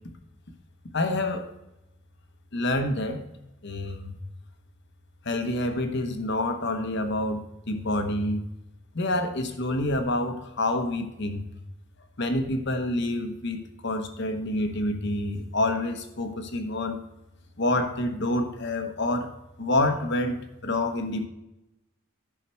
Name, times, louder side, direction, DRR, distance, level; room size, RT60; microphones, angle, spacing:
voice 1, 0.9-1.5 2.5-3.2 3.6-4.2 5.2-8.4 8.9-11.4 12.2-17.0 17.6-19.3 19.6-21.3, left 1 dB, 55° left, 7 dB, 1.0 m, -27 dB
10.5 x 5.8 x 4.5 m, 0.93 s
head